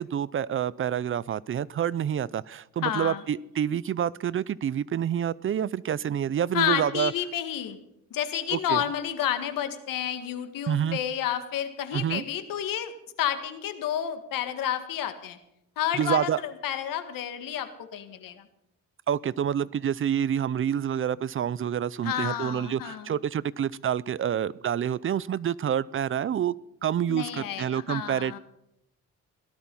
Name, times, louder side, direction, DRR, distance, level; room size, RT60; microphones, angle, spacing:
voice 1, 0.0-7.1 8.5-8.8 10.7-11.0 11.9-12.2 15.9-16.4 19.1-26.6 26.8-28.4, right 9 dB, 40° right, 21 dB, 0.5 m, -28 dB
voice 2, 2.8-3.2 6.5-7.8 8.1-12.9 13.2-15.4 15.8-18.4 22.0-23.1 27.1-28.4, left 10 dB, 85° left, 9 dB, 2.0 m, -30 dB
17.5 x 12.5 x 5.5 m, 0.81 s
cardioid pair, 115°, 33 cm